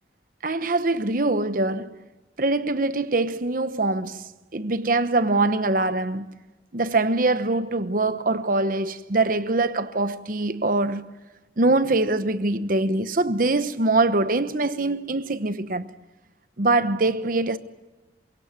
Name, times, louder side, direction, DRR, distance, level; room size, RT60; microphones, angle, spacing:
voice 1, 0.4-2.0 2.4-6.3 6.7-11.1 11.6-15.9 16.6-17.6, right 2 dB, 50° right, 1.0 m, -23 dB
28.0 x 17.0 x 9.3 m
head